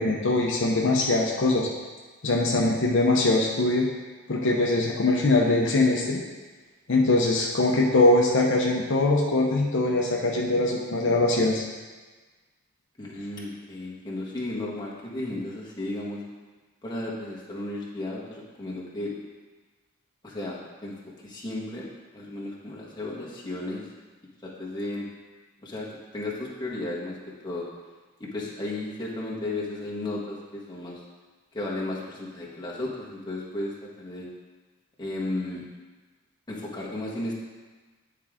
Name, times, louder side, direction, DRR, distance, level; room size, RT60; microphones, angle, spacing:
voice 1, 0.0-1.7 2.2-3.9 4.3-6.2 6.9-11.6, left 2 dB, 65° left, -1 dB, 0.9 m, -22 dB
voice 2, 13.0-16.2 16.8-19.1 20.2-20.9 21.2-21.9 22.1-23.9 24.4-25.1 25.6-25.9 26.1-27.2 27.4-27.7 28.2-31.0 31.5-34.3 35.0-35.6 36.5-37.4, left 2 dB, 20° left, -5 dB, 1.4 m, -34 dB
9.9 x 4.8 x 3.7 m, 1.3 s
head